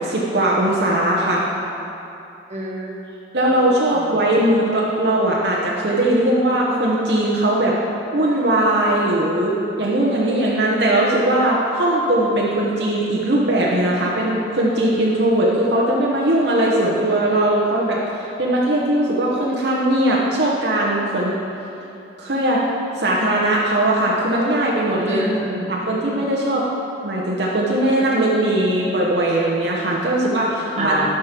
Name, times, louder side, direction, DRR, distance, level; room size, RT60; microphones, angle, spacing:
voice 1, 0.0-1.4 3.3-7.8 8.1-21.4 22.2-25.2 25.7-26.7 27.0-31.0, right 1 dB, 65° right, -4 dB, 1.1 m, -19 dB
voice 2, 2.5-3.1 3.9-4.5 25.1-25.8 30.7-31.1, right 1 dB, 35° right, -5 dB, 1.7 m, -27 dB
12.0 x 5.2 x 5.9 m, 2.9 s
head